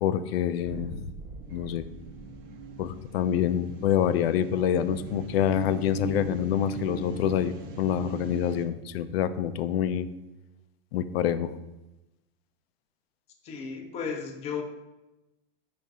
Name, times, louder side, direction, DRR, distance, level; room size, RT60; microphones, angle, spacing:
voice 1, 0.0-1.1 1.5-1.8 2.8-10.1 10.9-11.5, left 10 dB, 75° left, 12 dB, 0.4 m, -26 dB
sound 1, 0.6-4.6, right 3 dB, 50° right, 0.8 m, -45 dB
sound 2, 1.5-8.7, right 5 dB, 30° right, 0.4 m, -39 dB
voice 2, 13.4-14.6, left 6 dB, 20° left, 4 dB, 0.5 m, -34 dB
4.3 x 2.5 x 4.7 m, 0.98 s
supercardioid pair, 145°, 30 cm